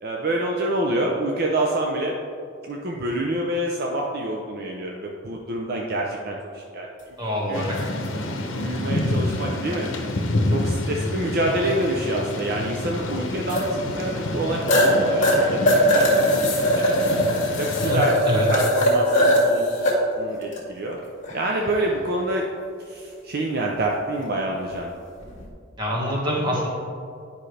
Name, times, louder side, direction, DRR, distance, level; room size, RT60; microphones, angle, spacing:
voice 1, 0.0-2.2 2.6-6.9 7.5-7.7 8.5-9.9 10.5-17.0 17.6-18.1 18.5-21.0 21.3-22.5 22.8-24.9, right 1 dB, 55° right, -1 dB, 0.6 m, -27 dB
voice 2, 7.2-7.9 17.8-18.5 25.8-26.7, equal, 25° right, -4 dB, 1.8 m, -26 dB
Thunder / Rain, 7.5-17.9, left 1 dB, 75° left, 0.9 m, -28 dB
sound 1, 7.8-7.9 10.4-10.5 13.5-13.7 14.1-14.2 14.7-14.9 15.2-19.9 20.4-20.6 21.2-21.7 25.2-25.4, equal, 40° left, 1.8 m, -20 dB
10.0 x 5.4 x 3.3 m, 2.4 s
head